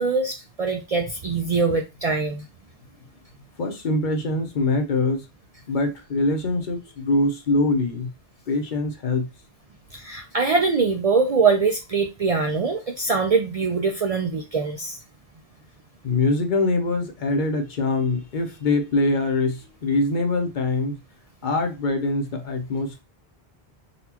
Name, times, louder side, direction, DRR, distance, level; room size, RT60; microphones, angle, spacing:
voice 1, 0.0-2.4 9.9-15.0, right 4 dB, 55° right, 0.4 m, -23 dB
voice 2, 3.6-5.2 5.7-8.1 8.5-9.3 16.0-21.0 21.4-23.0, left 2 dB, 55° left, 0.8 m, -23 dB
4.0 x 2.2 x 2.8 m
omnidirectional pair, 1.0 m